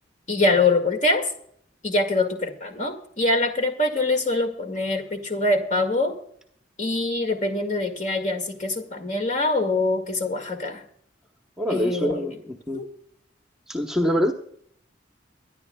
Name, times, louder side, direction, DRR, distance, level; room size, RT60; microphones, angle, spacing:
voice 1, 0.3-1.2 1.8-6.1 6.8-10.8 11.7-12.2 12.7-12.9, left 2 dB, 40° left, 5 dB, 2.0 m, -24 dB
voice 2, 11.6-12.8 13.7-14.3, equal, 5° right, 3 dB, 1.0 m, -25 dB
23.5 x 11.0 x 2.3 m, 0.64 s
head